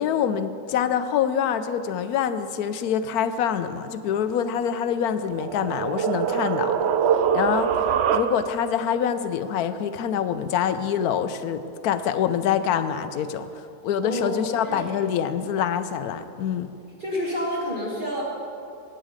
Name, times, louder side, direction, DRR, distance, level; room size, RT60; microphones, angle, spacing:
voice 1, 0.0-6.9 7.3-7.7 8.1-16.7, left 8 dB, 75° left, 11 dB, 1.0 m, -25 dB
sound 1, 4.9-8.7, right 7 dB, 75° right, 0.6 m, -24 dB
voice 2, 14.0-14.8 17.0-18.2, equal, 30° right, -6 dB, 1.8 m, -29 dB
15.0 x 9.1 x 5.0 m, 2.6 s
omnidirectional pair, 1.7 m